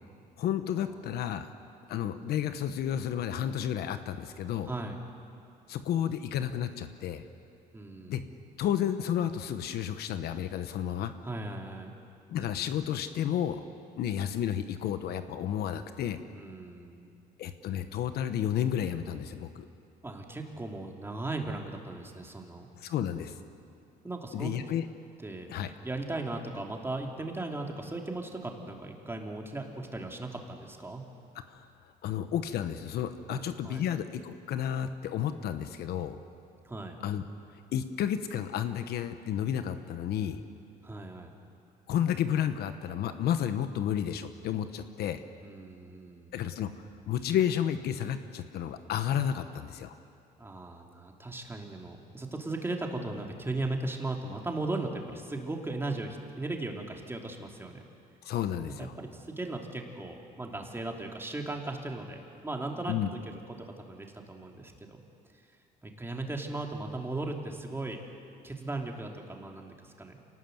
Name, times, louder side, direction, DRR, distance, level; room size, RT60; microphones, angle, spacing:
voice 1, 0.4-1.5 1.9-4.7 5.7-7.2 8.1-8.2 8.6-11.1 12.3-13.6 14.0-16.2 17.4-19.7 22.8-23.4 24.3-24.9 25.5-25.7 31.5-31.6 32.0-36.2 37.0-37.2 37.7-40.4 41.9-45.2 46.3-49.9 58.2-58.9 62.9-63.1, left 9 dB, 70° left, 10 dB, 1.1 m, -31 dB
voice 2, 4.7-5.0 7.7-8.3 11.2-11.9 16.3-17.1 20.0-22.7 24.0-24.5 25.2-25.5 25.8-31.0 33.3-33.8 36.6-36.9 40.8-41.4 45.4-46.3 50.4-57.8 58.6-62.9 63.5-65.0 65.8-68.0 68.4-70.2, right 2 dB, 15° right, 1 dB, 2.9 m, -37 dB
26.5 x 19.0 x 7.9 m, 2.5 s
cardioid pair, 110°, 17 cm